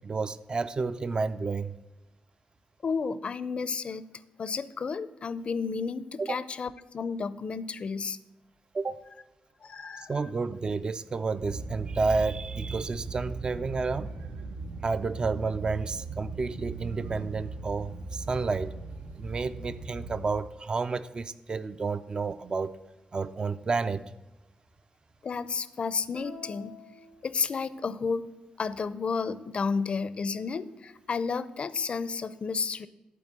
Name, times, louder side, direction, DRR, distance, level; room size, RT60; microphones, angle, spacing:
voice 1, 0.0-1.7 6.2-6.4 8.7-9.0 10.1-14.1 14.8-18.7 19.2-22.7 23.1-24.0, right 4 dB, 35° right, 12 dB, 0.4 m, -30 dB
voice 2, 2.8-4.0 4.4-8.2 9.6-10.1 25.2-26.7 27.2-28.3 28.6-32.9, left 5 dB, 45° left, 16 dB, 0.5 m, -32 dB
sound 1, 11.4-20.3, right 3 dB, 85° right, 1.0 m, -38 dB
sound 2, 26.1-27.9, left 3 dB, 70° right, 2.6 m, -49 dB
11.5 x 4.3 x 7.6 m, 1.1 s
cardioid pair, 100°, 3 cm